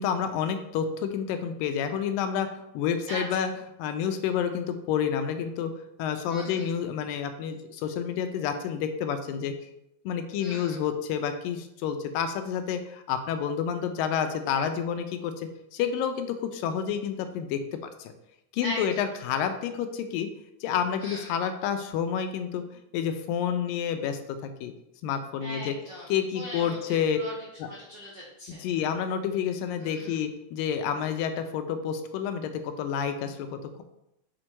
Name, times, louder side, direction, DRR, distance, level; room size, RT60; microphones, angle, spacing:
voice 1, 0.0-2.5 2.7-3.5 3.8-5.7 6.0-9.5 10.1-18.1 18.5-20.3 20.6-22.6 22.9-24.2 24.6-24.7 25.0-25.8 26.1-27.2 27.6-27.7 28.5-33.8, left 8 dB, 85° left, 7 dB, 2.3 m, -29 dB
voice 2, 3.1-3.5 6.3-6.7 10.4-10.8 18.6-19.0 21.0-21.3 25.4-27.3 27.6-28.6 29.8-30.2, equal, 75° right, -4 dB, 1.0 m, -39 dB
6.3 x 4.4 x 4.5 m, 0.82 s
omnidirectional pair, 4.0 m